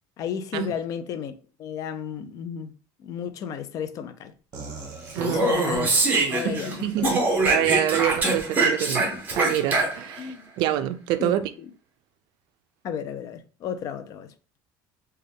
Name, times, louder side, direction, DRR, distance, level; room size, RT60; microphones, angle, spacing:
voice 1, 0.2-2.7 3.0-4.3 5.2-6.0 6.3-7.5 10.2-10.5 11.2-11.4 12.8-14.3, left 7 dB, 45° left, 0.4 m, -33 dB
sound 1, 4.5-5.9 7.0-7.5 8.1-8.4 9.3-9.6, right 3 dB, 45° right, 1.1 m, -41 dB
Speech, 5.1-6.7 7.0-10.2, right 3 dB, 20° right, 1.0 m, -23 dB
voice 2, 5.1-5.6 6.4-7.2 7.5-9.1 9.4-11.5, right 12 dB, 65° right, 0.4 m, -26 dB
3.8 x 2.2 x 3.5 m
cardioid pair, 150°, 8 cm